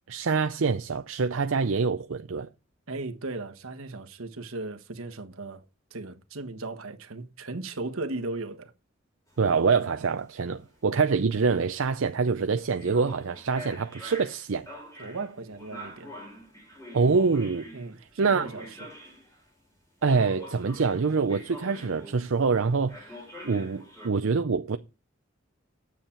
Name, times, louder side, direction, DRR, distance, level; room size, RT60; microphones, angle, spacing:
voice 1, 0.1-2.5 9.4-14.7 16.9-17.7 18.2-18.4 20.0-23.2 23.4-24.8, right 4 dB, 75° right, 0.6 m, -25 dB
voice 2, 2.9-5.6 5.9-8.7 15.0-16.1 17.7-18.9, right 2 dB, 90° right, 1.4 m, -37 dB
sound 1, 9.3-19.5 20.0-22.5 22.9-24.1, equal, 15° left, 4.0 m, -45 dB
9.4 x 7.4 x 4.4 m
head